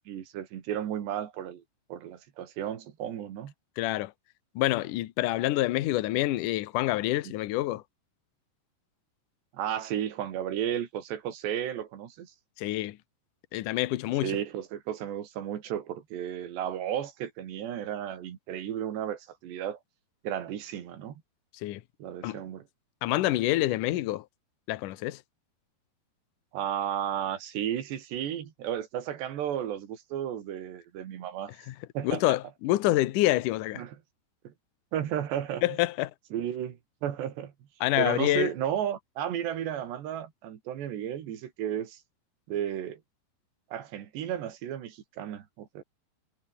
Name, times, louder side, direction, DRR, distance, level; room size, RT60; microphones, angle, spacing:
voice 1, 0.1-1.6 1.9-3.5 9.5-12.3 14.2-19.8 20.2-21.2 22.0-22.6 26.5-31.5 31.9-32.4 33.8-34.0 34.4-34.5 34.9-35.6 36.3-37.5 38.0-42.0 42.5-43.0 43.7-45.8, right 10 dB, 75° right, 4.5 m, -33 dB
voice 2, 3.8-4.1 4.6-7.8 12.6-13.0 13.5-14.4 21.6-21.8 22.2-22.4 23.0-24.3 24.7-25.2 31.7-31.8 32.0-33.8 35.6-36.1 37.8-38.5, left 16 dB, 70° left, 2.1 m, -27 dB
omnidirectional pair, 4.9 m